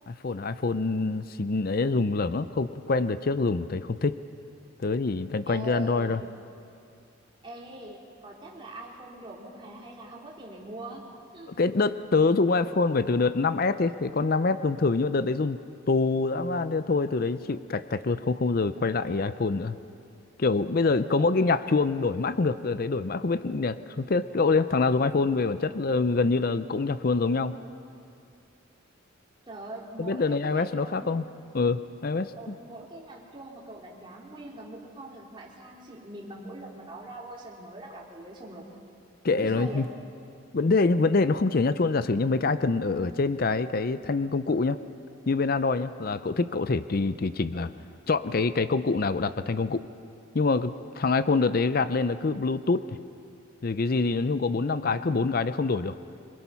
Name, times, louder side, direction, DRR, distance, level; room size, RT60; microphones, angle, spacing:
voice 1, 0.1-4.2 4.8-6.2 11.5-15.6 15.9-19.8 20.4-27.5 30.0-31.2 31.5-32.6 39.2-39.9 40.5-44.8 45.3-47.7 48.1-49.9 50.3-53.0 53.6-56.0, left 3 dB, 45° left, 13 dB, 0.5 m, -25 dB
voice 2, 5.5-6.2 7.4-11.0 11.3-11.5 21.1-21.2 29.5-31.2 32.3-38.6 39.3-39.8, right 1 dB, 25° right, -4 dB, 3.5 m, -42 dB
26.0 x 21.0 x 5.7 m, 2.4 s
head